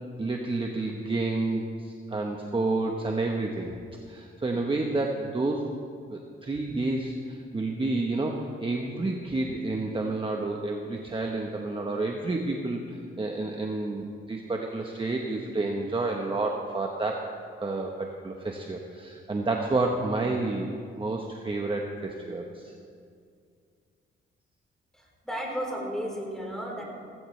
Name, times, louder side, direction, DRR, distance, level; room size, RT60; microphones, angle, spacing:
voice 1, 0.2-3.7 4.1-5.6 6.1-12.8 13.2-17.3 17.6-22.7, right 2 dB, 25° right, 1 dB, 1.1 m, -30 dB
voice 2, 24.9-26.8, equal, ahead, -2 dB, 4.1 m, -34 dB
17.0 x 15.5 x 3.3 m, 2.3 s
cardioid pair, 90°, 21 cm